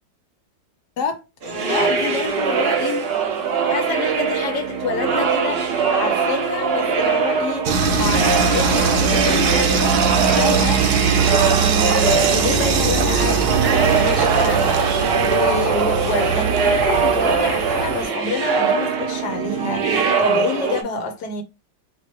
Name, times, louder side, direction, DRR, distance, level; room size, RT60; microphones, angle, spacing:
voice 1, 1.0-3.0 3.7-21.4, left 4 dB, 70° left, 1.2 m, -27 dB
sound 1, 1.4-20.8, right 5 dB, 50° right, 0.8 m, -21 dB
sound 2, 7.7-18.1, right 5 dB, 65° right, 1.3 m, -21 dB
4.7 x 2.9 x 3.0 m
omnidirectional pair, 1.9 m